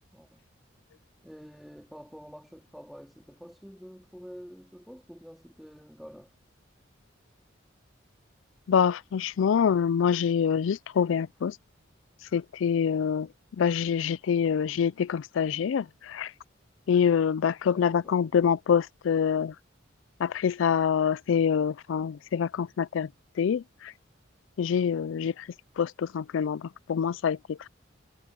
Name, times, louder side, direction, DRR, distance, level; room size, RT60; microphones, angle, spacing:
voice 1, 0.1-0.4 1.2-6.3 17.6-18.3, equal, ahead, 2.4 m, -48 dB
voice 2, 8.7-11.6 12.3-16.3 16.9-19.5 20.2-23.1 23.4-23.9 24.6-25.5 25.8-27.7, left 7 dB, 75° left, 0.4 m, -26 dB
head